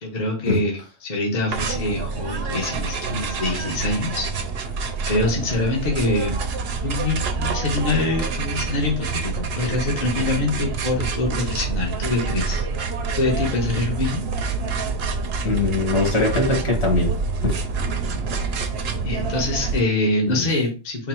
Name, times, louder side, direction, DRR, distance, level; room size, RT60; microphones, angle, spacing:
voice 1, 0.0-4.3 5.1-6.3 6.8-12.7 13.2-14.3 19.0-21.1, left 2 dB, 40° left, -1 dB, 0.9 m, -24 dB
sound 1, 1.5-19.8, right 4 dB, 60° right, 0.7 m, -27 dB
voice 2, 15.4-17.1 17.4-17.5 20.3-20.4, left 3 dB, 55° left, -1 dB, 1.7 m, -21 dB
4.0 x 2.0 x 4.3 m, 0.34 s
omnidirectional pair, 1.3 m